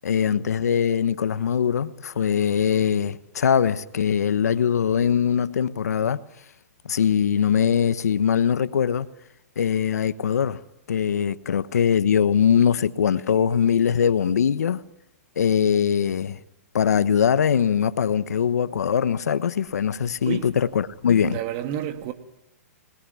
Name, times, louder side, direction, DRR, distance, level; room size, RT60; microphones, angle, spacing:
voice 1, 0.0-6.2 6.8-9.1 9.6-10.6 10.9-14.8 15.4-16.4 16.7-21.4, left 7 dB, 80° left, 1.1 m, -22 dB
voice 2, 21.2-22.1, right 11 dB, 40° right, 2.3 m, -30 dB
26.5 x 21.0 x 9.4 m
hypercardioid pair, 130°, 9 cm